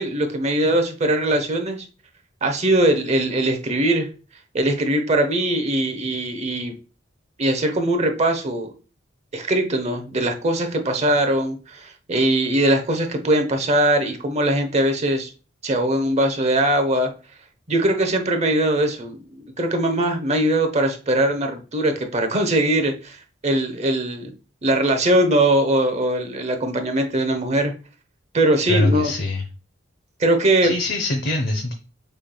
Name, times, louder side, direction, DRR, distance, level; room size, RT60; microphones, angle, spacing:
voice 1, 0.0-1.8 2.4-4.1 4.5-6.7 7.4-8.8 9.3-15.3 15.6-17.1 17.7-23.2 23.4-24.3 24.6-27.7 28.3-29.1 30.2-30.7, right 1 dB, 35° right, 5 dB, 0.8 m, -21 dB
voice 2, 28.7-29.4 30.6-31.7, left 2 dB, 55° left, 3 dB, 0.7 m, -23 dB
6.5 x 3.3 x 2.2 m, 0.34 s
head